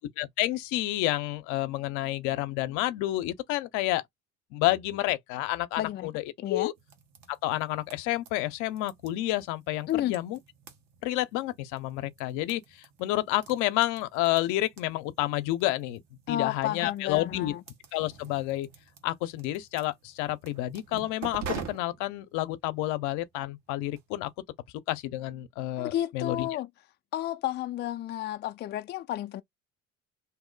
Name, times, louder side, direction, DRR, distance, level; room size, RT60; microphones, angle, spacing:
voice 1, 0.0-4.0 4.5-6.1 6.5-6.7 7.3-10.4 11.0-16.0 16.3-17.5 17.9-18.7 19.0-24.3 24.9-26.5, left 16 dB, 75° left, 0.6 m, -30 dB
voice 2, 5.8-6.1 6.4-6.7 9.9-10.1 16.3-17.6 25.8-26.7 27.1-29.4, left 13 dB, 35° left, 0.4 m, -31 dB
sound 1, 6.8-24.3, right 6 dB, 65° right, 1.3 m, -47 dB
2.8 x 2.0 x 3.8 m
supercardioid pair, 85°, 30 cm